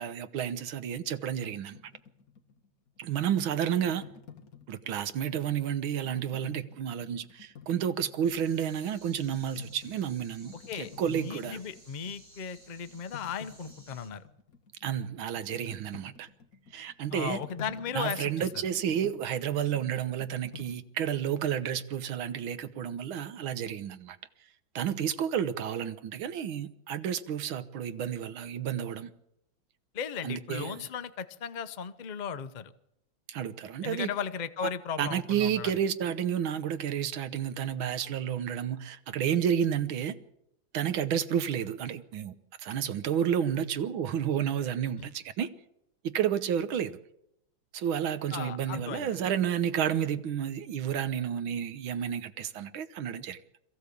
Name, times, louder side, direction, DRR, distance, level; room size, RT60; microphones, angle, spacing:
voice 1, 0.0-1.8 3.0-4.1 4.7-11.6 14.8-16.3 16.7-17.4 17.9-24.2 24.8-29.1 30.2-30.9 33.3-34.1 35.0-40.2 40.7-45.5 46.0-47.0 47.7-53.4, right 9 dB, 85° right, 1.8 m, -31 dB
sound 1, 1.7-5.2 5.8-8.6 9.0-12.2 12.5-20.7, left 6 dB, 50° left, 2.0 m, -50 dB
sound 2, 8.2-14.1, right 1 dB, 60° right, 5.3 m, -56 dB
voice 2, 10.5-14.2 17.1-18.5 29.9-32.7 33.8-35.7 45.0-45.1 48.3-49.2, left 7 dB, 85° left, 0.4 m, -36 dB
22.5 x 15.0 x 8.4 m
omnidirectional pair, 2.2 m